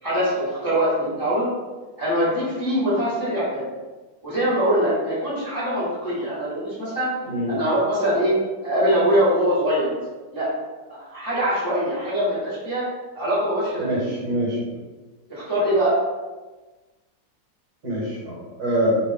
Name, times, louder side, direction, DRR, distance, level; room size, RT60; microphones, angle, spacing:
voice 1, 0.0-1.5 2.0-3.7 4.2-7.1 7.5-8.3 8.6-10.0 10.3-10.5 10.9-12.8 13.1-14.0 15.3-15.9, equal, 15° left, -10 dB, 1.0 m, -23 dB
voice 2, 7.3-7.6 13.8-14.6 17.8-19.0, equal, 50° right, -6 dB, 1.8 m, -24 dB
5.2 x 2.6 x 3.4 m, 1.2 s
omnidirectional pair, 2.4 m